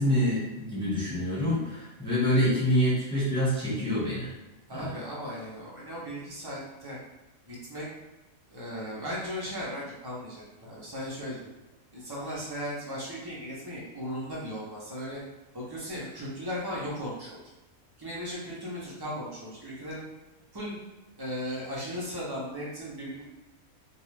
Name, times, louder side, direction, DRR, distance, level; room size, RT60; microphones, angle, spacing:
voice 1, 0.0-4.3 4.7-4.9, equal, 5° left, -10 dB, 1.1 m, -26 dB
voice 2, 4.7-7.0 7.5-7.9 8.5-11.5 11.9-15.2 15.5-17.4 18.0-20.0 20.5-20.8 21.2-23.2, equal, 35° right, -6 dB, 0.4 m, -37 dB
2.4 x 2.3 x 3.2 m, 1.0 s
omnidirectional pair, 1.5 m